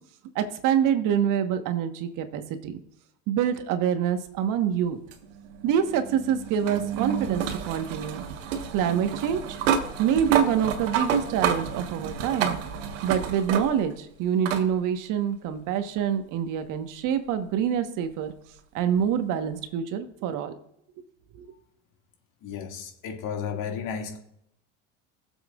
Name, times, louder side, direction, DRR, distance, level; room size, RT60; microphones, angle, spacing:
voice 1, 0.3-2.8 3.3-5.0 5.6-8.2 8.7-9.6 10.0-12.6 13.0-18.3 18.7-20.5 21.3-21.5, right 9 dB, 55° right, 1.3 m, -26 dB
sound 1, 5.1-14.0 14.5-14.7 16.0-16.1 19.0-19.1, right 7 dB, 75° right, 1.5 m, -30 dB
voice 2, 22.4-24.2, left 7 dB, 55° left, 2.3 m, -33 dB
19.5 x 7.4 x 2.5 m
hypercardioid pair, 85°, 37 cm